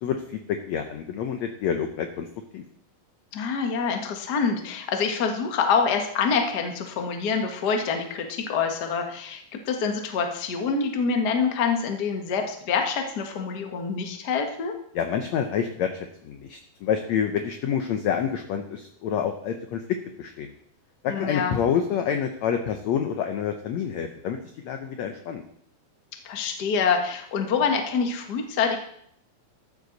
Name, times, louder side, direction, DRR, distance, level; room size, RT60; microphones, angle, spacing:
voice 1, 0.0-2.3 2.5-2.6 14.9-19.8 20.2-20.5 21.0-24.4 24.6-25.4, left 8 dB, 75° left, 6 dB, 1.7 m, -28 dB
voice 2, 3.3-14.7 21.1-21.6 26.2-28.8, left 5 dB, 45° left, 4 dB, 1.3 m, -26 dB
14.0 x 9.7 x 4.0 m, 0.69 s
omnidirectional pair, 4.1 m